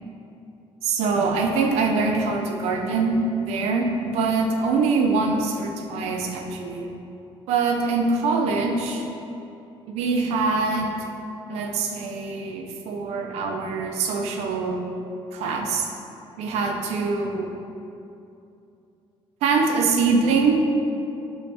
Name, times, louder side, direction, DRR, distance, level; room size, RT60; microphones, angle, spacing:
voice 1, 0.8-6.9 7.5-9.1 9.9-11.0 11.5-14.8 15.3-15.9 16.4-17.5 19.4-20.6, right 4 dB, 90° right, 2 dB, 0.4 m, -23 dB
3.2 x 3.1 x 2.6 m, 2.7 s
cardioid pair, 130°, 11 cm